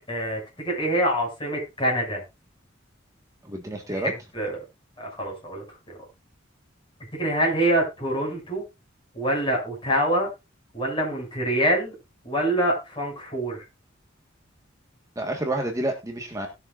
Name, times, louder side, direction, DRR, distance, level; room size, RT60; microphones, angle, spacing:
voice 1, 0.1-2.2 3.9-4.6 5.0-6.1 7.1-8.6 9.1-10.3 10.7-11.9 12.2-13.7, right 1 dB, 25° left, -1 dB, 6.7 m, -26 dB
voice 2, 3.4-4.1 15.2-16.5, right 1 dB, 15° right, 2 dB, 1.6 m, -29 dB
19.5 x 6.7 x 2.6 m, 0.25 s
head